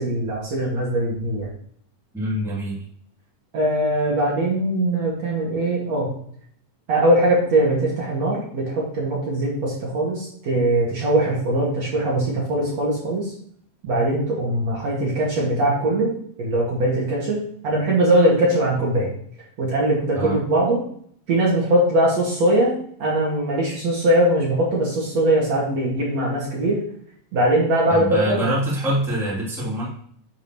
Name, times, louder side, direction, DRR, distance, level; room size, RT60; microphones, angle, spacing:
voice 1, 0.0-1.5 3.5-6.1 6.9-13.3 13.8-16.1 16.4-17.4 17.6-19.1 19.6-20.8 21.3-22.7 23.0-26.8 27.3-28.4, right 1 dB, 50° right, -4 dB, 3.1 m, -21 dB
voice 2, 2.1-2.8 20.1-20.4 27.9-29.9, right 1 dB, ahead, -7 dB, 2.6 m, -24 dB
9.2 x 7.7 x 3.1 m, 0.63 s
omnidirectional pair, 4.0 m